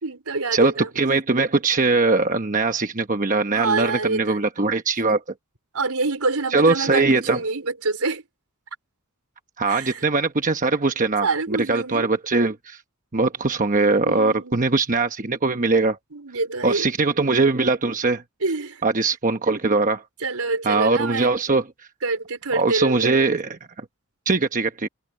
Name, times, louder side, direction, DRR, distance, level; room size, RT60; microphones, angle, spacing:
voice 1, 0.0-0.9 3.5-4.4 5.7-8.2 9.7-10.1 11.2-12.1 14.0-14.7 16.1-16.9 18.4-18.8 20.2-21.3 22.0-23.3, right 3 dB, 80° right, 4.4 m, -26 dB
voice 2, 0.5-5.2 6.5-7.4 9.6-11.3 11.7-12.8 13.1-16.0 16.6-18.2 18.8-20.0 20.7-21.6 22.5-23.6 24.3-24.9, right 3 dB, 35° right, 1.0 m, -21 dB
head